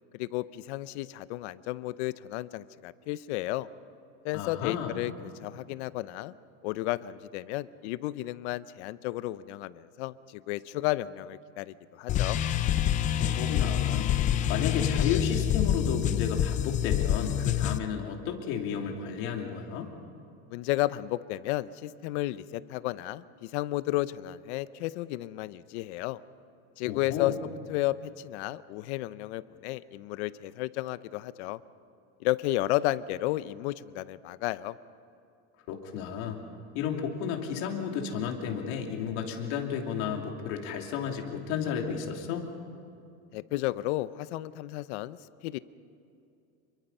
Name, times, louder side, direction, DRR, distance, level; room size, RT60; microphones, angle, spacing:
voice 1, 0.1-3.7 4.2-5.1 5.4-6.3 6.6-12.4 20.5-26.2 26.8-27.3 27.7-31.6 32.2-34.8 43.3-45.2 45.4-45.6, left 16 dB, 75° left, 16 dB, 0.8 m, -32 dB
voice 2, 4.3-5.0 13.2-14.1 14.5-19.9 26.9-27.4 35.7-36.4 36.7-42.5, left 7 dB, 55° left, 2 dB, 2.9 m, -32 dB
sound 1, 12.1-17.8, left 10 dB, 25° left, 0.4 m, -27 dB
28.0 x 22.5 x 5.5 m, 2.6 s
cardioid pair, 175°, 34 cm